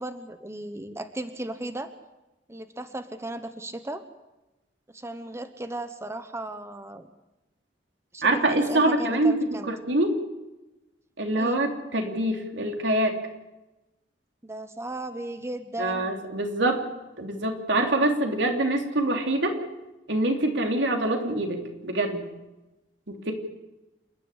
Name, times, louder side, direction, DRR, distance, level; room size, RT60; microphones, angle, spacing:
voice 1, 0.0-1.9 2.5-4.0 4.9-7.1 8.1-9.7 11.4-11.6 14.4-16.1, right 1 dB, 15° right, 9 dB, 1.0 m, -36 dB
voice 2, 8.2-9.4 9.7-10.2 11.2-13.2 15.8-16.8 17.2-19.6 20.1-22.2 23.1-23.3, right 1 dB, 80° right, 3 dB, 3.1 m, -25 dB
28.0 x 11.0 x 9.9 m, 1.0 s
head